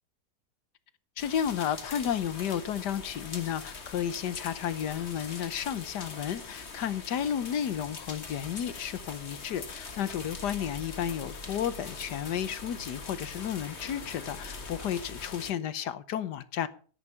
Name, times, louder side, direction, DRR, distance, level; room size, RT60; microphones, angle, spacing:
voice 1, 1.2-16.7, left 9 dB, 80° left, 1.5 m, -32 dB
sound 1, 1.2-15.5, left 4 dB, 40° left, 1.7 m, -42 dB
13.5 x 10.0 x 5.6 m
omnidirectional pair, 1.8 m